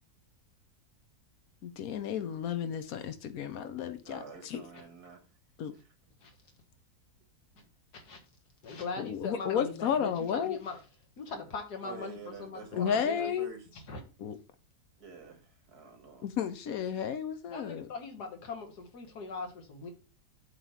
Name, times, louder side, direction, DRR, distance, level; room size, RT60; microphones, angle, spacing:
voice 1, 1.6-4.6 5.6-5.7 9.0-10.6 12.7-13.5 14.2-14.4 16.2-17.9, left 8 dB, 70° left, 1.1 m, -32 dB
voice 2, 4.0-5.2 5.7-5.8 11.8-13.7 15.0-16.3, right 5 dB, 75° right, 2.1 m, -47 dB
voice 3, 8.6-10.8 11.2-12.7 12.9-13.3 13.7-14.0 17.5-19.9, left 4 dB, 85° left, 2.0 m, -40 dB
7.9 x 3.2 x 5.5 m
omnidirectional pair, 1.7 m